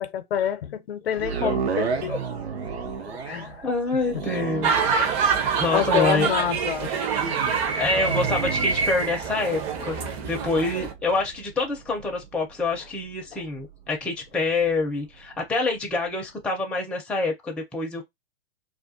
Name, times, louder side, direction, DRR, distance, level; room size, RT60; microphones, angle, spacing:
voice 1, 0.0-2.1 2.8-2.9 3.3-3.7 5.7-6.9 9.8-10.0 13.3-13.4, left 10 dB, 70° left, 0.6 m, -27 dB
sound 1, 1.1-15.4 15.9-16.0, right 5 dB, 80° right, 0.8 m, -34 dB
voice 2, 3.6-4.7 5.4-6.3 7.7-18.0, left 3 dB, 5° left, 0.5 m, -26 dB
sound 2, 4.6-10.9, right 5 dB, 35° right, 0.6 m, -26 dB
2.4 x 2.2 x 2.6 m
hypercardioid pair, 115°, 32 cm